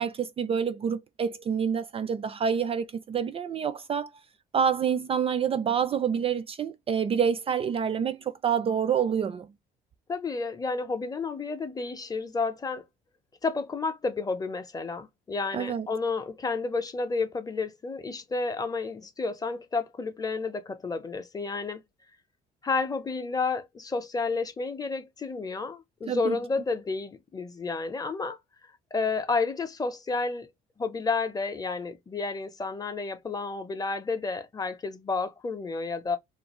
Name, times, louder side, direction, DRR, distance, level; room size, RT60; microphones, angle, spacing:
voice 1, 0.0-4.1 4.5-9.5 15.5-15.9 26.0-26.4, right 7 dB, 35° right, 0.3 m, -27 dB
voice 2, 10.1-12.8 13.4-21.8 22.6-28.4 28.9-30.5 30.8-36.2, left 4 dB, 20° left, 0.6 m, -31 dB
2.5 x 2.3 x 2.9 m
cardioid pair, 110°, 17 cm